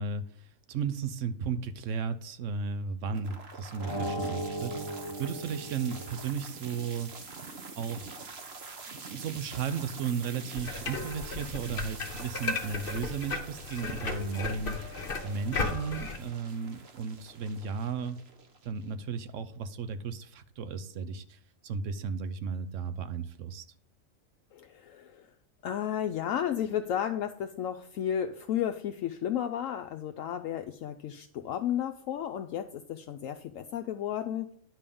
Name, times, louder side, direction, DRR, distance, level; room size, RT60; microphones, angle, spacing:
voice 1, 0.0-7.1 7.8-8.1 8.9-14.8 15.2-18.2 18.6-23.6, right 5 dB, 65° right, 10 dB, 1.0 m, -35 dB
sound 1, 3.1-19.1, right 4 dB, 50° right, 1.2 m, -46 dB
sound 2, 3.8-6.5, right 1 dB, 20° left, 1.2 m, -37 dB
sound 3, 10.5-16.2, left 3 dB, 45° left, 1.1 m, -35 dB
voice 2, 24.5-25.3 25.6-34.5, left 10 dB, 70° left, 7 dB, 0.9 m, -33 dB
9.8 x 3.6 x 6.8 m, 0.63 s
omnidirectional pair, 1.5 m